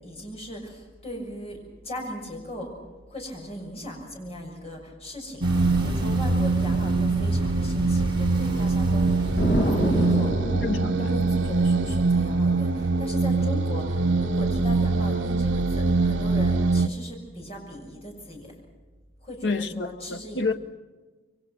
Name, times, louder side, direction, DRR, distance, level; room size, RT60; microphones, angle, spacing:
voice 1, 0.0-2.7 3.1-10.3 11.0-18.5 19.2-20.5, equal, 35° left, 6.6 m, -38 dB
sound 1, 5.4-10.4, equal, 25° right, 5.9 m, -32 dB
sound 2, 5.4-16.9, right 3 dB, 85° right, 0.8 m, -23 dB
Explosion, 9.4-12.0, equal, 65° left, 2.7 m, -27 dB
voice 2, 10.6-11.1 19.4-20.5, left 3 dB, 85° left, 1.0 m, -29 dB
27.5 x 23.0 x 6.1 m
head